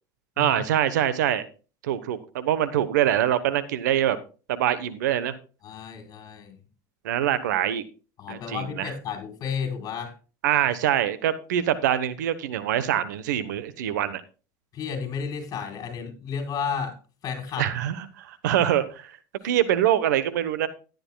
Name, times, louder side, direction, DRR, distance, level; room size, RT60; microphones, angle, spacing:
voice 1, 0.4-1.5 1.8-4.2 4.5-5.3 7.0-7.8 8.3-8.9 10.4-14.2 17.6-19.2 19.4-20.7, right 11 dB, 90° right, 14 dB, 1.1 m, -24 dB
voice 2, 5.6-6.6 8.2-10.1 14.7-16.9 17.2-17.7, left 6 dB, 40° left, 3 dB, 4.8 m, -32 dB
14.5 x 10.5 x 2.3 m, 0.34 s
supercardioid pair, 110°, 9 cm